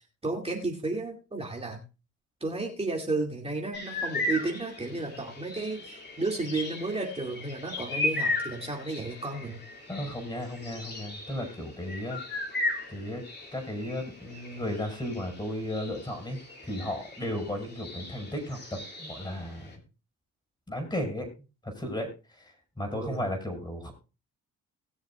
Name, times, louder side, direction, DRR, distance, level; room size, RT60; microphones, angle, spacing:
voice 1, 0.2-1.8 2.4-9.6 22.9-23.3, right 3 dB, 20° right, 0 dB, 2.4 m, -33 dB
sound 1, 3.7-19.8, left 2 dB, 35° left, 3.0 m, -37 dB
voice 2, 9.9-12.2 12.9-13.2 13.5-19.7 20.7-21.3 21.6-23.9, left 1 dB, 15° left, 4 dB, 5.6 m, -35 dB
20.0 x 7.0 x 2.4 m, 0.30 s
cardioid pair, 90°, 30 cm